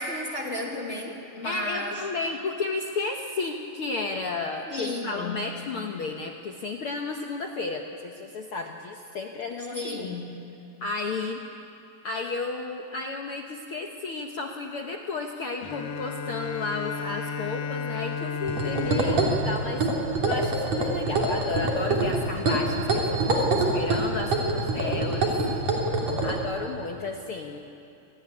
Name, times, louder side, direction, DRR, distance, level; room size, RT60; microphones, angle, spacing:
voice 1, 0.0-2.0 4.7-5.5 9.7-10.4, left 1 dB, 25° left, -1 dB, 2.2 m, -33 dB
voice 2, 1.4-10.1 10.8-11.4 12.0-19.8 20.2-25.3 26.2-27.6, left 3 dB, 60° left, 2 dB, 1.5 m, -33 dB
Bowed string instrument, 15.6-21.1, left 5 dB, 90° left, 3.4 m, -34 dB
sound 1, 18.5-26.4, right 2 dB, 55° right, 4.2 m, -25 dB
26.5 x 18.0 x 9.9 m, 2.6 s
omnidirectional pair, 3.9 m